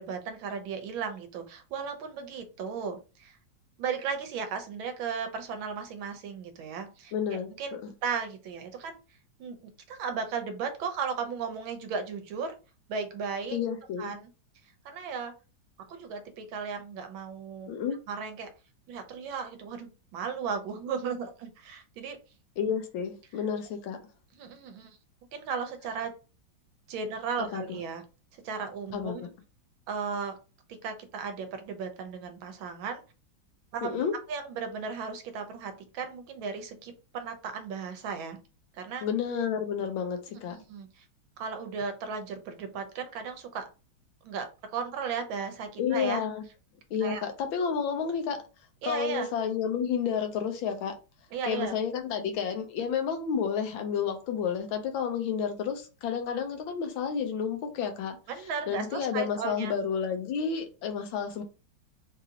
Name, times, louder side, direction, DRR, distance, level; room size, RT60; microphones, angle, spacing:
voice 1, 0.0-3.4 3.8-9.0 9.4-9.6 9.9-12.6 12.9-13.6 14.0-14.3 14.8-15.3 15.9-17.7 18.1-18.5 18.9-22.2 24.4-24.9 25.3-26.1 26.9-28.0 28.3-29.3 29.9-30.4 30.8-33.0 33.7-34.0 34.3-38.4 38.7-39.1 40.3-41.0 41.4-43.7 44.2-46.2 47.0-47.2 48.8-49.3 51.3-51.7 58.3-59.7, right 5 dB, 80° right, 7 dB, 1.4 m, -35 dB
voice 2, 7.1-7.5 7.8-7.9 13.5-14.1 17.7-18.0 22.6-24.0 27.5-27.6 28.9-29.2 33.8-34.1 39.0-40.6 45.8-46.4 46.9-48.4 48.8-50.9 51.5-58.2 58.7-61.4, left 7 dB, 80° left, 6 dB, 1.4 m, -30 dB
3.9 x 2.6 x 2.8 m, 0.32 s
omnidirectional pair, 2.2 m